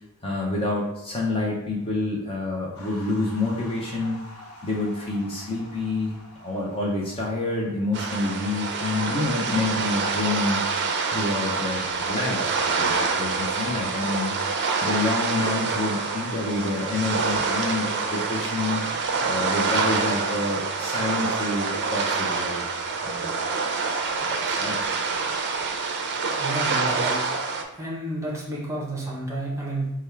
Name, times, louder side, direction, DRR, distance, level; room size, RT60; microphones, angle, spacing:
voice 1, 0.2-4.2 4.6-10.6 11.1-14.3 14.8-18.9 19.2-22.7 23.0-23.3 24.3-24.8, left 2 dB, 25° left, -3 dB, 0.6 m, -28 dB
sound 1, 2.7-8.0, left 1 dB, 75° left, 1.1 m, -46 dB
sound 2, 7.9-27.6, right 4 dB, 50° right, 0.5 m, -26 dB
voice 2, 26.4-27.2 27.7-29.9, right 1 dB, 15° right, -4 dB, 0.9 m, -30 dB
3.4 x 2.3 x 4.4 m, 0.94 s
head